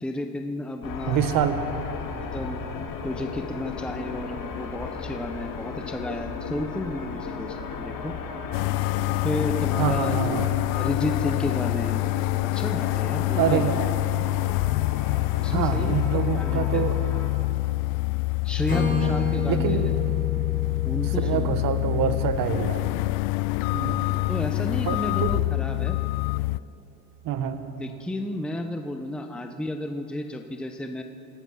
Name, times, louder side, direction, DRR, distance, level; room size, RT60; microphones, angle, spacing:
voice 1, 0.0-1.2 2.1-2.6 3.0-8.1 9.2-10.2 10.7-12.0 12.5-13.7 15.4-16.8 18.4-19.9 20.8-21.5 24.3-26.0 27.8-31.0, left 1 dB, ahead, 5 dB, 1.0 m, -32 dB
sound 1, 0.8-17.3, left 5 dB, 45° left, 2.5 m, -35 dB
voice 2, 1.1-1.6 9.8-10.5 13.4-13.8 15.5-17.0 18.7-19.1 19.5-19.9 21.0-22.9 23.7-24.1 24.9-25.4 27.2-27.6, right 9 dB, 45° right, 8 dB, 1.7 m, -26 dB
sound 2, 8.5-26.6, left 22 dB, 60° left, 0.5 m, -26 dB
Acoustic guitar / Strum, 18.7-22.6, left 4 dB, 15° left, 6.0 m, -30 dB
26.5 x 17.0 x 5.7 m, 2.9 s
supercardioid pair, 110°, 47 cm